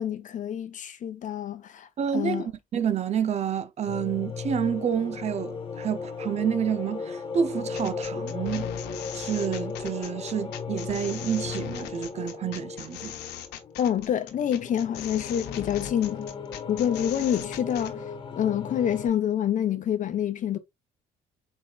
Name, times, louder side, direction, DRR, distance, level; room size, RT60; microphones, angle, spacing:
voice 1, 0.0-1.9 2.1-2.5 13.8-16.3 16.7-18.1 18.3-20.6, left 9 dB, 50° left, 0.9 m, -27 dB
voice 2, 2.0-8.7 9.1-13.1, right 8 dB, 40° right, 0.5 m, -29 dB
sound 1, 3.9-19.1, left 5 dB, 30° left, 1.3 m, -36 dB
sound 2, 7.7-17.9, left 10 dB, 80° left, 1.1 m, -40 dB
4.7 x 4.0 x 2.3 m
cardioid pair, 110°, 17 cm